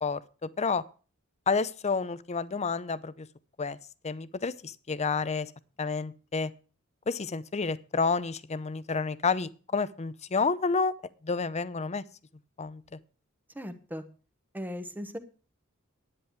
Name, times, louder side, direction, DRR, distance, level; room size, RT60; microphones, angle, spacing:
voice 1, 0.0-0.8 1.5-3.3 3.6-3.8 4.0-5.5 5.8-6.5 7.1-10.9 11.2-12.0 12.6-13.0, left 4 dB, 30° left, 17 dB, 0.6 m, -30 dB
voice 2, 13.5-14.0 14.5-15.2, equal, 10° right, 9 dB, 1.2 m, -37 dB
10.5 x 9.9 x 4.7 m, 0.38 s
head